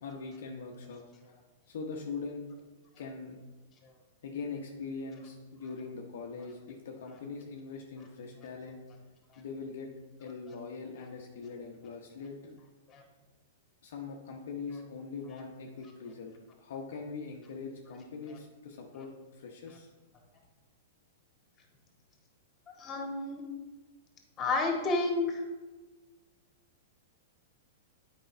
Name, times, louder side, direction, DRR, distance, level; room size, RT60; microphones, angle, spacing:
voice 1, 0.0-1.0 1.7-2.5 3.0-3.4 4.2-8.8 9.4-9.9 10.2-12.6 13.8-19.9, left 4 dB, 65° left, 1 dB, 0.9 m, -42 dB
voice 2, 22.8-23.4 24.4-25.4, left 3 dB, 25° left, 1 dB, 1.9 m, -31 dB
8.7 x 5.3 x 3.3 m, 1.3 s
hypercardioid pair, 110°, 0 cm